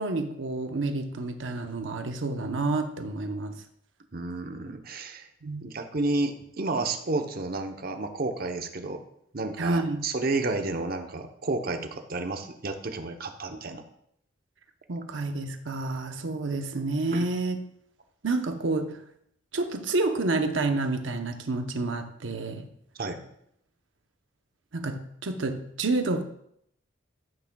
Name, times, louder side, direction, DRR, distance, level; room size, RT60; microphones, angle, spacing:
voice 1, 0.0-3.6 5.4-5.6 9.6-10.1 14.9-17.6 18.2-19.0 19.5-22.7 24.7-26.2, right 2 dB, 80° right, 6 dB, 0.8 m, -29 dB
voice 2, 4.1-5.3 5.6-9.0 9.3-13.8 17.1-17.3 23.0-23.3, right 2 dB, 50° right, 5 dB, 0.9 m, -31 dB
14.0 x 8.6 x 2.3 m, 0.72 s
head